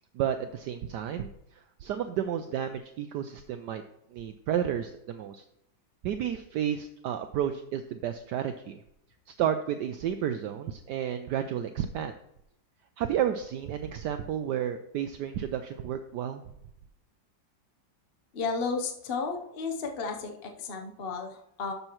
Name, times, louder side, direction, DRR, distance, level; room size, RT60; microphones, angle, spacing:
voice 1, 0.1-3.8 4.1-5.4 6.0-8.8 9.3-12.2 13.0-16.4, right 9 dB, 75° right, 8 dB, 1.1 m, -32 dB
voice 2, 18.3-21.7, left 4 dB, 55° left, 3 dB, 0.7 m, -33 dB
12.5 x 6.7 x 3.0 m, 0.80 s
omnidirectional pair, 2.1 m